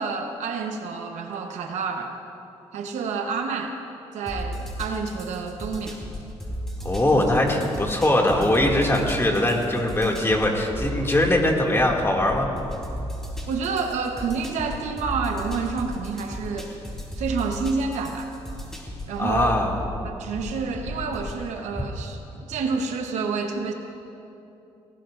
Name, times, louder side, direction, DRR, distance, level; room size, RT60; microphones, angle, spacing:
voice 1, 0.0-2.1 2.7-3.8 4.1-6.0 13.5-16.7 17.2-18.3 19.1-19.6 20.0-22.2 22.5-23.7, right 5 dB, 85° right, 4 dB, 1.1 m, -28 dB
sound 1, 4.3-21.4, equal, 5° left, 3.6 m, -35 dB
voice 2, 6.8-12.5 19.2-19.7, left 1 dB, 20° left, 0 dB, 2.4 m, -21 dB
18.5 x 17.0 x 2.6 m, 2.8 s
cardioid pair, 70°, 12 cm